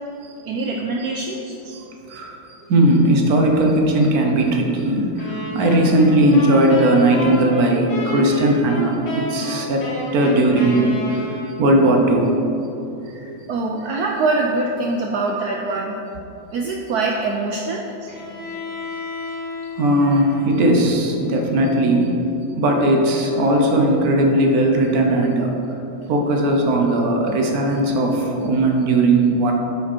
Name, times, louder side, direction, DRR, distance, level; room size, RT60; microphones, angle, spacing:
voice 1, 0.5-1.6 13.5-16.0 16.5-17.9, right 3 dB, 85° right, 1 dB, 0.8 m, -23 dB
voice 2, 2.7-11.3 11.6-12.4 13.2-13.4 19.8-22.1 22.6-25.5 26.1-29.5, right 1 dB, 60° right, 2 dB, 1.1 m, -18 dB
sound 1, 5.2-11.8, left 1 dB, 75° left, 2.2 m, -30 dB
Bowed string instrument, 18.1-22.0, left 4 dB, 25° left, 1.4 m, -35 dB
8.7 x 5.0 x 4.4 m, 2.9 s
omnidirectional pair, 2.2 m